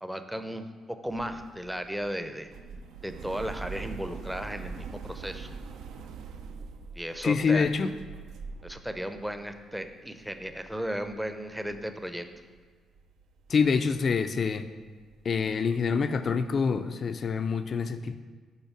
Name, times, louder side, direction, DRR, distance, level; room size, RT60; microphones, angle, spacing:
voice 1, 0.0-2.5 3.0-5.5 6.9-7.7 8.6-12.3, equal, 5° right, 8 dB, 0.5 m, -35 dB
sound 1, 1.1-12.7 12.9-16.6, right 5 dB, 80° right, 0.4 m, -44 dB
voice 2, 7.2-7.9 13.5-14.7 15.3-18.2, left 5 dB, 50° left, 10 dB, 0.3 m, -26 dB
5.5 x 4.0 x 5.8 m, 1.5 s
cardioid pair, 90°, 0 cm